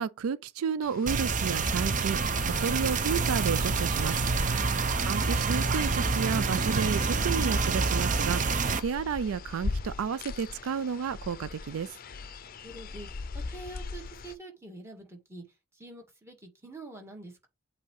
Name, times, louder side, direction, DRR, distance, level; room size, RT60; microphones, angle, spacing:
voice 1, 0.0-4.3 5.0-12.0, right 6 dB, 80° right, 0.4 m, -32 dB
sound 1, 0.8-14.3, left 4 dB, 45° left, 0.5 m, -41 dB
sound 2, 1.1-8.8, right 4 dB, 40° right, 0.6 m, -27 dB
voice 2, 12.6-17.5, right 2 dB, 15° right, 1.7 m, -47 dB
8.1 x 2.8 x 4.7 m
head